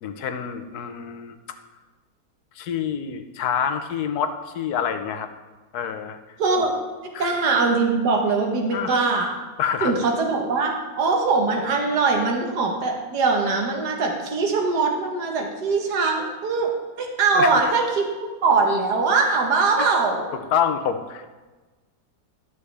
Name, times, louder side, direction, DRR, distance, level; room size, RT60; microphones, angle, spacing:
voice 1, 0.0-1.4 2.6-5.3 5.7-6.2 7.1-7.3 8.7-9.0 9.6-10.0 17.3-17.7 19.8-19.9 20.3-21.3, left 7 dB, 65° left, 8 dB, 1.2 m, -27 dB
voice 2, 6.4-6.8 7.2-9.3 9.8-16.7 17.0-18.1 18.4-20.2, right 4 dB, 70° right, 1 dB, 1.8 m, -22 dB
12.5 x 6.8 x 3.3 m, 1.3 s
omnidirectional pair, 1.9 m